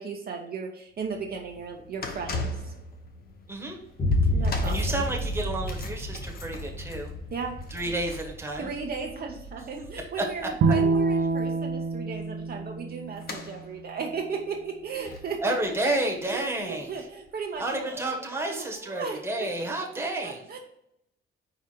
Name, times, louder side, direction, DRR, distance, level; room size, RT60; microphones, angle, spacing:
voice 1, 0.0-2.7 4.3-5.0 7.3-7.6 8.6-15.5 16.3-19.5 20.0-20.6, right 5 dB, 45° right, 1 dB, 0.8 m, -36 dB
sound 1, 0.9-17.3 17.5-17.8 18.6-18.7, left 2 dB, 45° left, 0.9 m, -42 dB
voice 2, 3.5-3.8 4.6-7.1 7.7-8.7 10.2-10.5 15.4-16.9 17.6-20.4, right 1 dB, 10° right, 0 dB, 1.2 m, -30 dB
Boom, 4.0-11.8, left 1 dB, 30° left, 1.4 m, -31 dB
Bowed string instrument, 10.6-13.9, right 4 dB, 85° right, 0.7 m, -27 dB
4.9 x 4.8 x 4.4 m, 0.79 s
cardioid pair, 145°, 21 cm